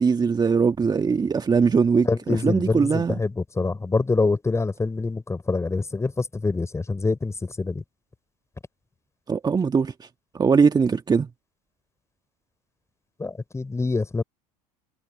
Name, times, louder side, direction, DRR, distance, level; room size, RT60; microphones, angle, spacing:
voice 1, 0.0-3.2 9.3-10.1 10.3-11.3, right 5 dB, 20° right, 1.4 m, -21 dB
voice 2, 2.0-7.8 13.2-14.2, left 3 dB, 15° left, 4.9 m, -25 dB
figure-of-eight pair, 75°, 20 cm